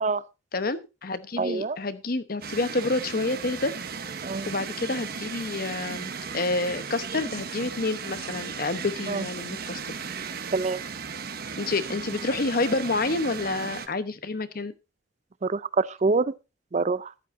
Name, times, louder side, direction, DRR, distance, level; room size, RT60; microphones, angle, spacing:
voice 1, 0.5-3.7 4.5-9.8 11.6-14.7, left 3 dB, 50° left, 12 dB, 1.0 m, -28 dB
voice 2, 1.4-1.8 4.2-4.5 9.1-9.2 10.5-10.8 15.4-16.3 16.7-17.1, right 4 dB, 40° right, 17 dB, 0.5 m, -25 dB
sound 1, 2.4-13.9, right 5 dB, 55° right, 1.0 m, -36 dB
14.0 x 11.0 x 2.6 m, 0.27 s
head